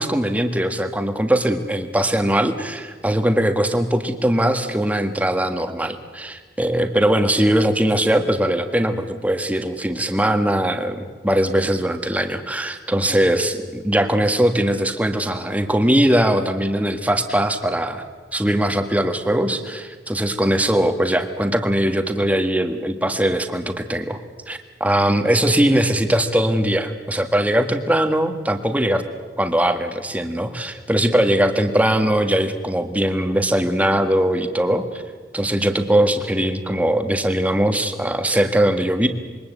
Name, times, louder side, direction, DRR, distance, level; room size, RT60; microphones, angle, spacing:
voice 1, 0.0-18.0 18.3-24.2 24.5-29.0 29.4-35.0 35.3-39.1, right 1 dB, 10° right, 7 dB, 1.6 m, -20 dB
26.5 x 23.0 x 8.2 m, 1.5 s
head